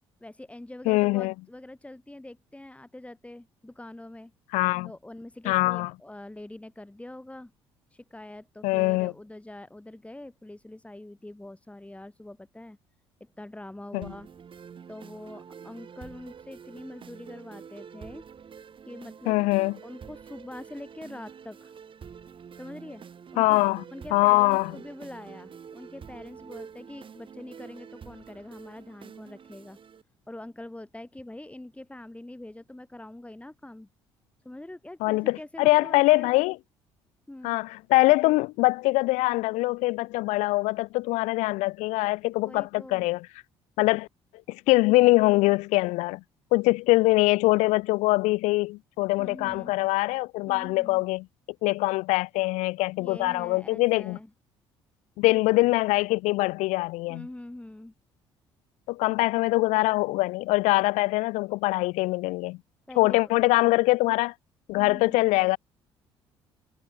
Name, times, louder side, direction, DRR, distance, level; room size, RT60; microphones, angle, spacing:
voice 1, 0.2-4.3 4.9-7.5 7.9-12.8 13.2-14.3 14.9-18.2 18.9-19.4 19.8-21.7 22.6-23.0 23.3-23.6 23.9-29.8 30.3-33.9 34.4-36.3 37.3-37.6 42.4-43.1 49.2-49.7 50.5-51.0 53.0-54.3 55.2-55.6 57.1-57.9 62.9-63.3 64.8-65.2, left 1 dB, 10° left, 5.7 m, -44 dB
voice 2, 0.9-1.3 4.5-4.9 5.5-5.9 8.6-9.1 13.9-14.1 19.3-19.8 23.4-23.8 24.1-24.7 35.0-36.6 37.4-43.3 43.8-44.1 44.5-46.2 46.5-51.3 51.6-54.2 55.2-57.3 58.9-62.6 63.0-64.3 64.7-65.6, left 22 dB, 60° left, 0.4 m, -23 dB
sound 1, 14.0-30.0, right 7 dB, 40° right, 2.5 m, -47 dB
figure-of-eight pair, 50°, 14 cm